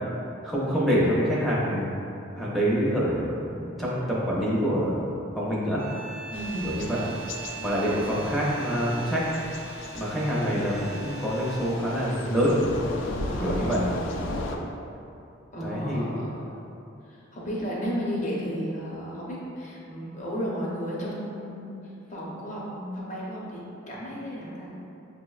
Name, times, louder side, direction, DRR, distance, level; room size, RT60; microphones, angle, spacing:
voice 1, 0.4-1.9 2.4-5.0 5.4-6.0 6.6-7.0 7.6-9.2 9.9-12.6 13.4-13.8 15.6-16.2, equal, ahead, -7 dB, 0.4 m, -26 dB
sound 1, 5.8-12.0, right 5 dB, 90° right, 0.5 m, -42 dB
Thunder / Rain, 6.3-14.6, left 2 dB, 65° left, 0.3 m, -37 dB
voice 2, 6.3-6.9 13.3-14.1 15.5-16.6 17.0-24.7, equal, 40° left, -5 dB, 0.7 m, -33 dB
5.7 x 2.0 x 2.3 m, 2.8 s
head